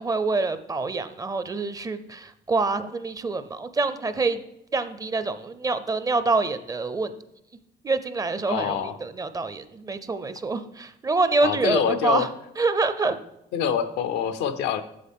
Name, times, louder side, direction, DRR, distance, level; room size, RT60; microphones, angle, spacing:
voice 1, 0.0-4.4 4.7-7.1 7.8-12.3 12.6-13.2, right 3 dB, 20° right, 12 dB, 0.5 m, -26 dB
voice 2, 8.5-9.0 11.4-12.3 13.5-14.8, left 8 dB, 85° left, 10 dB, 0.7 m, -25 dB
8.6 x 7.1 x 3.5 m, 0.82 s
cardioid pair, 110°, 17 cm